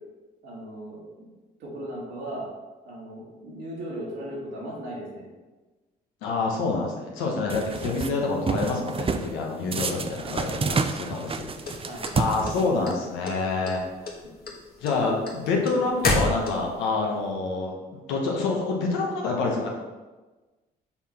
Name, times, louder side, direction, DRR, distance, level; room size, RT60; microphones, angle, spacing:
voice 1, 0.4-1.0 1.6-2.5 2.8-5.3 10.2-10.4 11.8-12.1 14.2-14.3 14.9-15.3, right 1 dB, 75° right, -4 dB, 2.0 m, -37 dB
voice 2, 6.2-11.8 12.1-13.8 14.8-17.7 18.1-19.7, left 3 dB, 85° left, 0 dB, 1.1 m, -27 dB
sound 1, 7.5-8.1 8.5-9.3 9.7-12.9, right 4 dB, 30° right, 0.5 m, -29 dB
sound 2, 11.6-12.9 13.2-13.8 14.1-16.9, left 2 dB, 50° left, 1.3 m, -28 dB
5.8 x 4.0 x 4.2 m, 1.2 s
hypercardioid pair, 50°, 20 cm